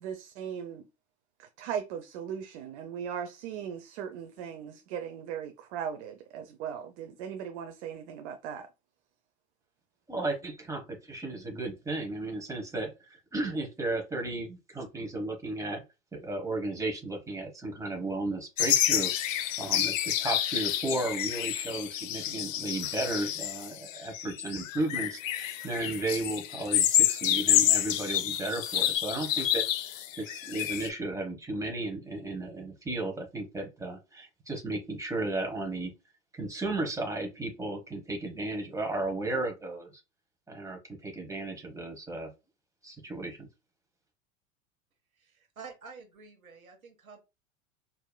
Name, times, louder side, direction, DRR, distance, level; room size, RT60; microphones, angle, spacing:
voice 1, 0.0-0.9 1.4-8.7, right 8 dB, 55° right, 0.6 m, -38 dB
voice 2, 10.1-15.8 16.1-29.6 29.9-35.9 36.3-39.9 40.5-42.3 42.8-43.5, right 2 dB, 10° right, 1.2 m, -34 dB
sound 1, 18.6-30.9, left 11 dB, 70° left, 0.6 m, -28 dB
voice 3, 45.1-47.2, right 5 dB, 85° right, 1.1 m, -49 dB
4.5 x 2.8 x 2.2 m
figure-of-eight pair, 85°, 41 cm